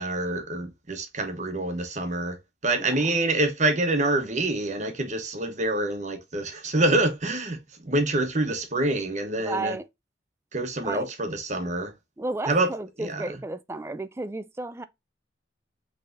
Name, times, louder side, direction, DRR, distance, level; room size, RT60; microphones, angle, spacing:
voice 1, 0.0-2.4 2.6-9.8 10.5-11.9 12.5-12.7 13.0-13.2, right 2 dB, 40° right, 1.1 m, -26 dB
voice 2, 2.8-3.2 9.4-9.8 10.8-11.1 12.2-14.8, right 2 dB, 15° right, 0.3 m, -33 dB
5.6 x 3.4 x 2.6 m
head